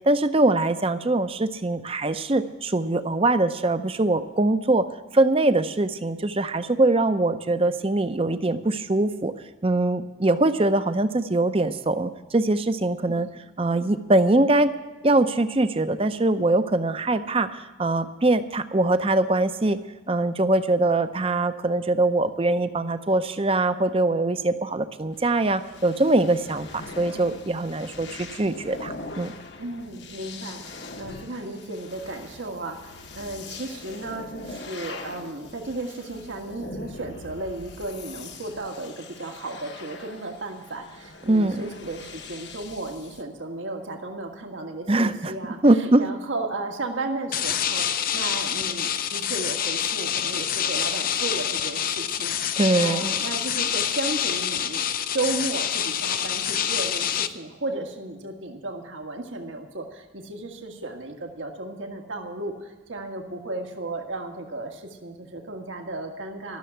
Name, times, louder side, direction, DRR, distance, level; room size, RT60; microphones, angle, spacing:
voice 1, 0.1-4.9 5.1-9.3 9.6-13.3 13.6-14.7 15.0-19.8 20.1-29.3 41.3-41.6 44.9-45.3 45.6-46.0 52.6-53.2, right 2 dB, 30° right, 11 dB, 0.6 m, -22 dB
sound 1, 25.1-43.2, left 3 dB, 60° left, 1.2 m, -42 dB
voice 2, 29.6-54.8 55.1-66.6, right 2 dB, 75° right, 3 dB, 1.7 m, -34 dB
sound 2, 47.3-57.3, left 9 dB, 45° left, 0.6 m, -27 dB
13.5 x 6.9 x 9.8 m, 1.2 s
head